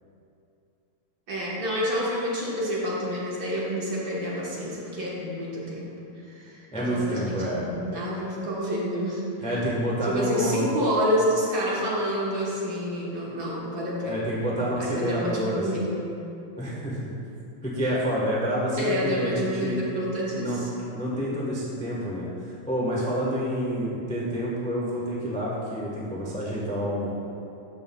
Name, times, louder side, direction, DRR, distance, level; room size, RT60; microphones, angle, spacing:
voice 1, 1.3-5.9 6.4-6.6 6.9-9.2 10.0-14.5 14.8-16.0 18.8-20.7, equal, 50° right, -6 dB, 1.6 m, -28 dB
voice 2, 6.7-7.7 9.4-10.7 14.1-15.9 16.6-17.0 17.6-19.8 20.3-20.6 20.9-27.1, equal, 10° left, -6 dB, 0.4 m, -28 dB
13.0 x 5.4 x 2.3 m, 2.6 s
omnidirectional pair, 2.4 m